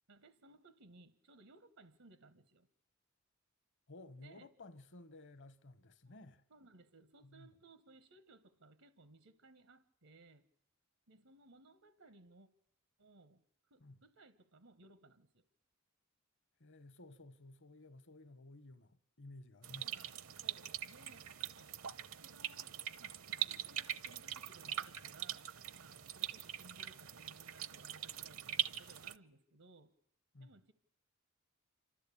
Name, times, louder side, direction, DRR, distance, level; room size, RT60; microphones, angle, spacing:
voice 1, 0.1-2.7 4.2-4.5 6.1-6.2 6.5-10.5 11.1-12.5 13.0-13.4 13.7-15.4 19.8-20.1 20.4-21.2 21.5-29.9 30.4-30.7, right 3 dB, 85° right, 1.3 m, -62 dB
voice 2, 3.9-6.4 7.2-7.5 13.8-14.0 16.6-20.1 30.3-30.5, left 2 dB, 60° left, 1.1 m, -55 dB
sound 1, 19.6-29.2, right 11 dB, 70° right, 0.8 m, -42 dB
27.0 x 13.0 x 8.5 m
head